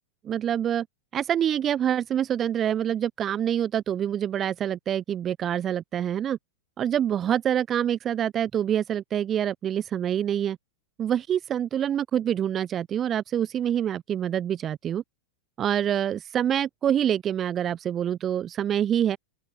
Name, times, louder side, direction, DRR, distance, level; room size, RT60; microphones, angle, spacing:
voice 1, 0.2-0.9 1.1-6.4 6.8-10.6 11.0-15.0 15.6-19.2, right 10 dB, 25° right, 7.9 m, -26 dB
figure-of-eight pair, 90°, 0 cm